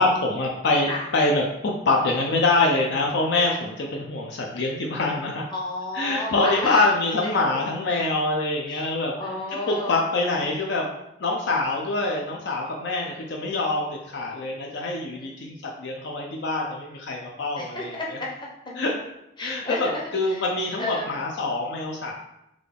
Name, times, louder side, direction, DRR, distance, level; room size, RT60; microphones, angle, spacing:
voice 1, 0.0-5.4 5.9-9.1 9.7-10.9 11.2-18.0 18.8-18.9 19.4-22.1, left 2 dB, 65° left, 0 dB, 0.5 m, -25 dB
voice 2, 5.5-6.8 7.5-7.6 8.7-8.8 9.2-9.9 15.2-15.3 17.6-18.5 19.4-20.0 20.3-20.4 20.8-21.1, left 2 dB, 25° left, -3 dB, 0.8 m, -31 dB
3.7 x 2.3 x 3.4 m, 0.84 s
head